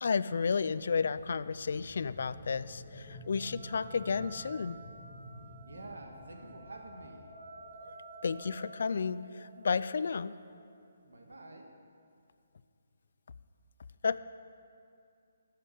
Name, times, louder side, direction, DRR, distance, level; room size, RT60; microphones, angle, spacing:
voice 1, 0.0-4.8 8.2-10.3 14.0-14.2, left 5 dB, 60° left, 15 dB, 0.4 m, -32 dB
sound 1, 1.1-7.9 8.4-8.5, equal, 15° left, 1.3 m, -51 dB
sound 2, 2.3-10.6, right 3 dB, 10° right, 2.9 m, -53 dB
voice 2, 5.7-7.3 11.0-11.7, right 2 dB, 75° right, 3 dB, 1.7 m, -48 dB
12.5 x 6.8 x 7.5 m, 2.5 s
figure-of-eight pair, 145°, 0 cm